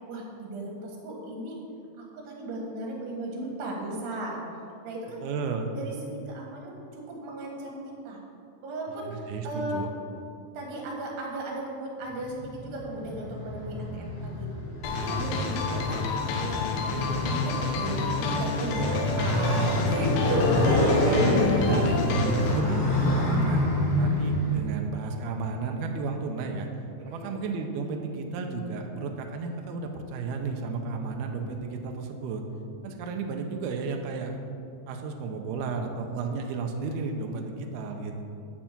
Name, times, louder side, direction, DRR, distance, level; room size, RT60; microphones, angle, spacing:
voice 1, 0.1-1.6 2.0-4.4 4.8-5.2 5.7-8.2 8.6-9.8 10.5-14.5 14.8-16.0 16.3-21.2 21.5-21.8 27.1-27.4, right 1 dB, 70° right, -1 dB, 3.3 m, -36 dB
voice 2, 5.2-5.7 9.0-9.9 15.1-15.5 20.6-22.9 23.1-26.7 27.1-32.4 32.8-34.4 34.9-38.2, right 4 dB, 90° right, 3 dB, 2.2 m, -32 dB
Motorcycle, 12.1-24.6, left 1 dB, 60° left, 2.7 m, -27 dB
sound 1, 14.8-22.6, left 3 dB, 80° left, 2.9 m, -30 dB
9.2 x 4.4 x 7.2 m, 2.6 s
omnidirectional pair, 5.1 m